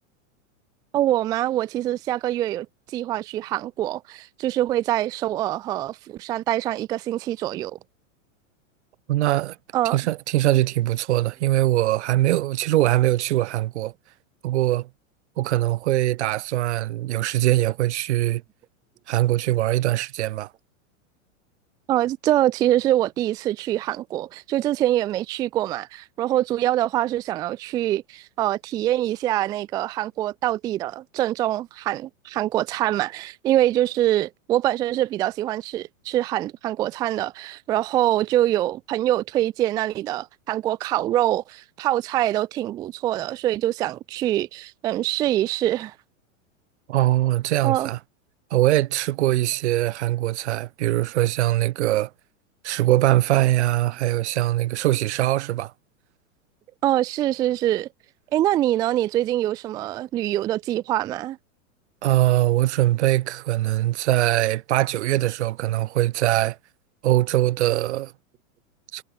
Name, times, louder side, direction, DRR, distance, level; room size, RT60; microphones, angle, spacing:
voice 1, 0.9-7.8 9.7-10.0 21.9-45.9 47.6-47.9 56.8-57.9 58.3-61.4, right 13 dB, 10° right, 0.5 m, -24 dB
voice 2, 9.1-9.6 9.9-13.9 14.4-14.9 15.4-18.4 19.1-20.5 46.9-48.0 48.5-52.1 52.6-55.7 62.0-66.6 67.0-68.1 68.9-69.0, right 15 dB, 55° right, 2.6 m, -22 dB
supercardioid pair, 170°, 40 cm